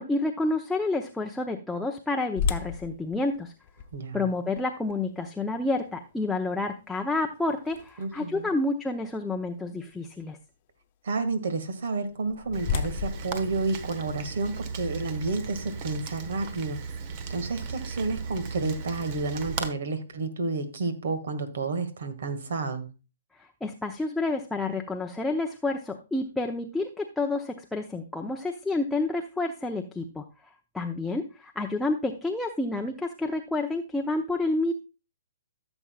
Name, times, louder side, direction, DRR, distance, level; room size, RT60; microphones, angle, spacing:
voice 1, 0.0-3.5 4.1-10.4 23.4-30.2 30.7-34.7, left 2 dB, 5° left, 2 dB, 0.7 m, -29 dB
sound 1, 2.4-8.3 8.9-9.0 9.6-9.8 11.9-14.5, left 6 dB, 40° left, 0.9 m, -35 dB
voice 2, 3.9-4.2 8.0-8.5 11.0-16.8 17.3-22.9, right 3 dB, 65° right, 11 dB, 1.9 m, -30 dB
Rain, 12.5-19.7, right 5 dB, 40° right, 1.1 m, -37 dB
14.5 x 7.1 x 2.3 m, 0.31 s
hypercardioid pair, 135°, 0 cm